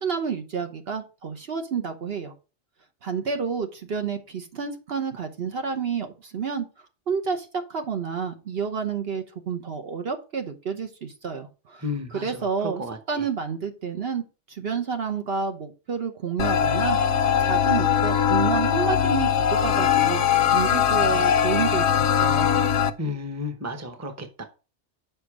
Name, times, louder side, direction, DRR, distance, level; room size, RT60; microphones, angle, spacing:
voice 1, 0.0-2.3 3.0-6.7 7.1-11.8 12.1-12.8 13.1-17.0 17.4-20.2 20.5-22.5, right 6 dB, 60° right, 1.1 m, -29 dB
voice 2, 11.8-13.3 23.0-24.4, left 2 dB, 15° right, 0.9 m, -33 dB
Light Cast Loop Aura, 16.4-22.9, left 8 dB, 75° left, 0.9 m, -21 dB
6.8 x 5.2 x 4.8 m
omnidirectional pair, 1.2 m